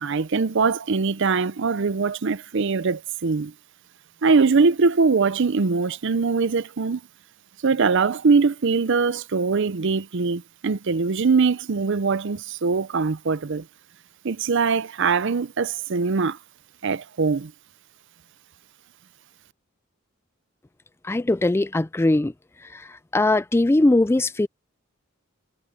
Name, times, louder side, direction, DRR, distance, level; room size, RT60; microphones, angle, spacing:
voice 1, 0.0-3.5 4.2-7.0 7.6-13.6 14.2-16.4 16.8-17.5, right 4 dB, 60° right, 0.6 m, -22 dB
voice 2, 21.0-22.3 22.7-24.5, left 2 dB, 10° left, 0.3 m, -20 dB
head